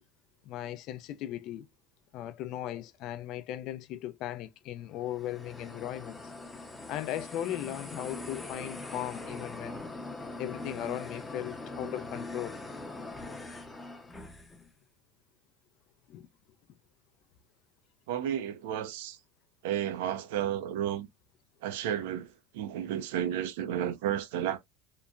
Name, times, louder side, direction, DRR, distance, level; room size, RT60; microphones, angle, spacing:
voice 1, 0.5-1.7 2.1-6.3 6.9-9.8 10.4-12.6 16.1-16.3, left 12 dB, 55° left, 0.3 m, -37 dB
sound 1, 4.9-14.7, left 2 dB, 10° left, 0.6 m, -42 dB
voice 2, 18.1-19.2 19.6-21.1 21.6-24.6, right 10 dB, 80° right, 0.5 m, -32 dB
2.9 x 2.1 x 2.4 m
supercardioid pair, 115°, 0 cm